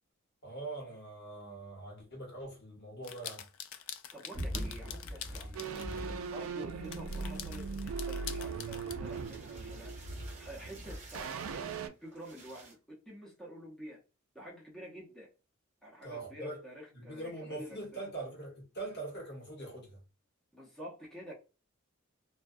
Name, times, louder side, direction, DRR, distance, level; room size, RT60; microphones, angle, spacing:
voice 1, 0.4-3.5 16.0-16.6 16.9-20.0, right 2 dB, 50° left, 1.2 m, -43 dB
sound 1, 3.0-6.1 6.7-8.9, left 9 dB, 65° left, 0.3 m, -45 dB
voice 2, 3.8-5.7 6.3-9.9 10.3-14.0 14.3-15.3 15.8-18.0 20.5-21.3, right 1 dB, 5° left, 0.6 m, -49 dB
sound 2, 4.3-6.6 6.8-11.5 12.1-12.7, equal, 35° right, 0.7 m, -44 dB
sound 3, 5.5-10.8 11.1-11.9, right 5 dB, 70° right, 0.3 m, -39 dB
2.3 x 2.2 x 2.5 m
head